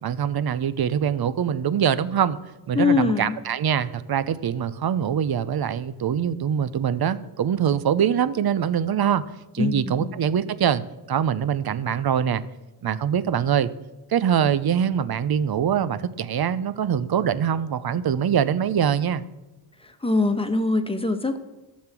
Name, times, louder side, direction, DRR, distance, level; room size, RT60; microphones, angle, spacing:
voice 1, 0.0-2.4 2.7-9.2 9.5-10.8 11.1-12.4 12.8-13.7 14.1-19.2, right 8 dB, 50° right, 15 dB, 0.7 m, -23 dB
voice 2, 2.7-3.4 9.6-10.1 19.8-21.4, left 3 dB, 10° left, 7 dB, 1.2 m, -23 dB
12.5 x 7.2 x 6.1 m, 1.0 s
cardioid pair, 70°, 49 cm